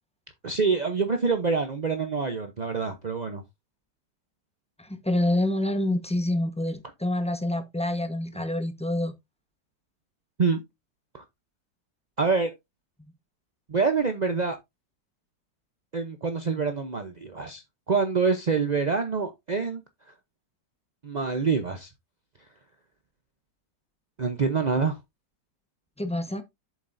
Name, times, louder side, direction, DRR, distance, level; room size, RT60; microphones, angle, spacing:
voice 1, 0.4-3.4 10.4-10.6 11.1-11.2 12.2-12.5 13.7-14.6 15.9-19.8 21.0-21.9 24.2-25.0, right 4 dB, 50° right, 0.4 m, -26 dB
voice 2, 4.8-9.1 26.0-26.4, left 1 dB, 5° left, 0.6 m, -27 dB
8.3 x 7.4 x 2.6 m
omnidirectional pair, 2.0 m